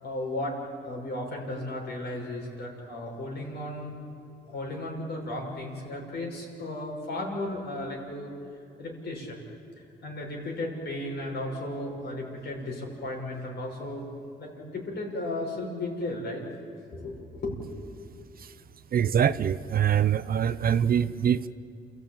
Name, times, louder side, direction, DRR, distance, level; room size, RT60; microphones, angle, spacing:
voice 1, 0.0-0.6 0.8-3.9 4.5-8.3 8.8-9.4 10.0-14.0 14.4-16.4 16.9-17.8, left 1 dB, 60° left, 0 dB, 6.5 m, -35 dB
voice 2, 18.9-21.5, right 8 dB, 50° right, 14 dB, 0.7 m, -24 dB
29.0 x 15.0 x 8.9 m, 2.5 s
cardioid pair, 90°, 20 cm